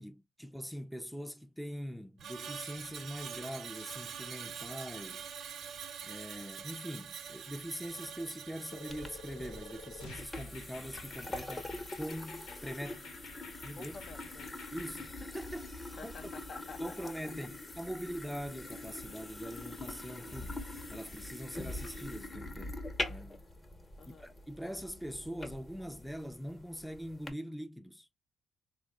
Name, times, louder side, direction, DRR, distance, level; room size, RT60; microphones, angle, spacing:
voice 1, 0.0-5.3 6.0-11.7 12.0-13.0 13.6-13.9 14.7-16.1 16.8-20.6 20.9-22.8 23.1-23.4 24.1-28.1, equal, ahead, 0.4 m, -43 dB
Screech, 2.2-12.6 12.9-13.2, right 7 dB, 65° right, 0.5 m, -46 dB
sound 1, 8.7-15.1, left 4 dB, 90° left, 1.0 m, -51 dB
sound 2, 8.9-27.3, left 2 dB, 25° left, 0.9 m, -44 dB
voice 2, 13.8-14.5 16.0-17.3 24.0-24.3, left 5 dB, 55° left, 0.6 m, -49 dB
3.5 x 2.1 x 3.3 m
cardioid pair, 90°, 0 cm